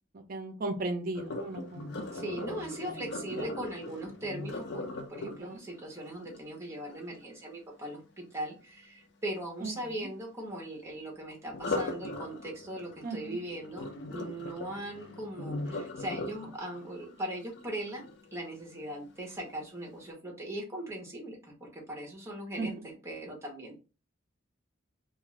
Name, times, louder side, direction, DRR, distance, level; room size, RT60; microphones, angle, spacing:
voice 1, 0.1-3.0 3.3-3.5 5.2-5.6 9.6-9.7 10.0-10.1 13.0-13.4 22.6-22.8, right 2 dB, 45° right, 6 dB, 0.5 m, -37 dB
Sink (filling or washing), 1.1-7.1 11.5-18.5 19.0-19.4 19.8-19.9, left 2 dB, 60° left, 0.5 m, -39 dB
voice 2, 2.1-18.0 18.3-23.8, right 1 dB, 15° right, 0 dB, 0.9 m, -39 dB
2.5 x 2.4 x 3.1 m, 0.33 s
head